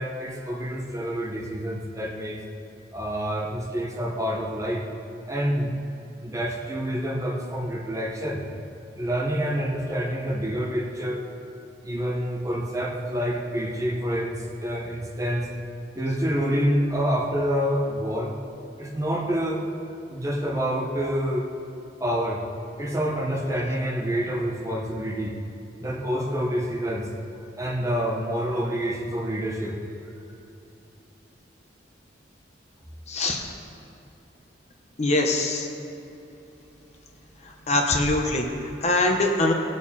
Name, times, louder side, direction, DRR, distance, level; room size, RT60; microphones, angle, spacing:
voice 1, 0.0-2.4 2.9-4.8 5.3-5.7 6.2-8.4 9.0-11.3 11.8-15.5 16.0-18.3 18.8-19.6 20.1-21.5 22.0-22.4 22.8-25.4 25.8-27.1 27.6-29.8, equal, 15° right, 0 dB, 0.9 m, -27 dB
voice 2, 33.1-33.4 35.0-35.7 37.4-39.5, left 2 dB, 35° left, 2 dB, 1.1 m, -23 dB
17.5 x 6.8 x 4.3 m, 2.9 s
head